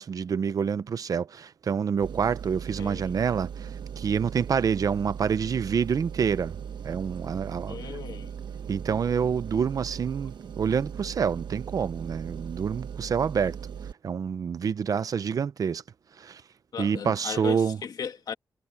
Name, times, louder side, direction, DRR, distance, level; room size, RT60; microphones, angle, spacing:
voice 1, 0.0-6.6 6.8-8.0 8.7-13.6 14.0-15.8 16.2-16.4 16.8-17.8, right 7 dB, 55° right, 0.7 m, -27 dB
sound 1, 2.0-13.9, right 7 dB, 85° right, 1.2 m, -38 dB
voice 2, 2.8-3.1 7.7-8.3 16.7-18.3, left 7 dB, 65° left, 2.1 m, -36 dB
wide cardioid pair, 175°, 7 cm